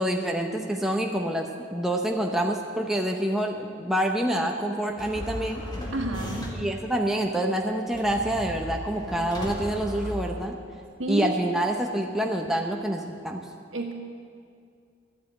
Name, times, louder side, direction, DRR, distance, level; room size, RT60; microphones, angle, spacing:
voice 1, 0.0-5.6 6.6-10.6 11.1-13.4, right 1 dB, ahead, 1 dB, 0.8 m, -27 dB
sound 1, 5.0-6.8 7.9-10.8, left 1 dB, 20° left, 1.7 m, -36 dB
voice 2, 5.9-6.6 11.0-11.3 13.7-13.9, right 1 dB, 70° right, 3 dB, 1.6 m, -30 dB
12.0 x 8.4 x 9.1 m, 2.4 s
head